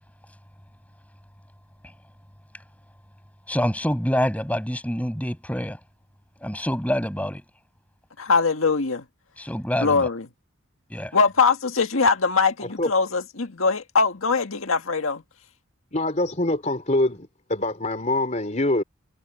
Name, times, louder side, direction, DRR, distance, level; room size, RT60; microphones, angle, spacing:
voice 1, 3.5-5.8 6.4-7.4 9.4-10.1 10.9-11.2, equal, 5° left, 7.4 m, -26 dB
voice 2, 8.2-9.0 9.8-10.3 11.1-15.2, left 4 dB, 85° left, 1.8 m, -22 dB
voice 3, 15.9-18.8, left 1 dB, 35° left, 3.7 m, -24 dB
head